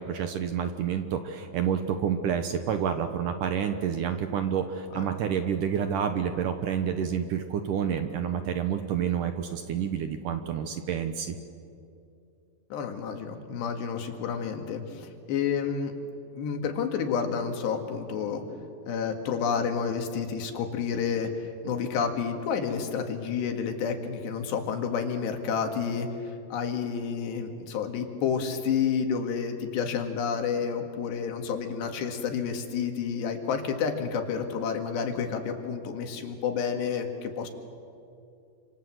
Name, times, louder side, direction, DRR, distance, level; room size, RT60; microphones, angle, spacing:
voice 1, 0.0-11.4, right 8 dB, 70° right, 7 dB, 2.1 m, -29 dB
voice 2, 12.7-15.9 16.3-18.4 18.9-37.5, left 6 dB, 85° left, 4 dB, 4.2 m, -30 dB
29.0 x 26.5 x 7.8 m, 2.5 s
omnidirectional pair, 4.7 m